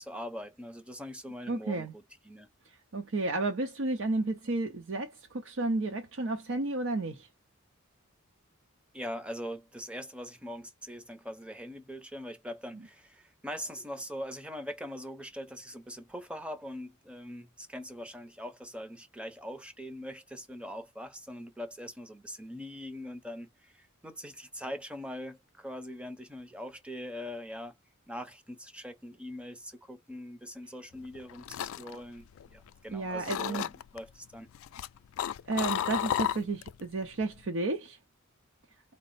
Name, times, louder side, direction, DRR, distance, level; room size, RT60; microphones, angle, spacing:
voice 1, 0.0-2.5 8.9-27.7 28.1-34.5, equal, 5° right, 0.7 m, -42 dB
voice 2, 1.5-1.9 2.9-7.3 32.9-33.6 35.5-38.0, right 2 dB, 65° right, 0.6 m, -32 dB
sipping a juice box, 31.0-32.9 33.2-34.0 34.5-36.8 37.1-37.5, left 10 dB, 75° left, 0.3 m, -33 dB
4.1 x 2.0 x 4.0 m
head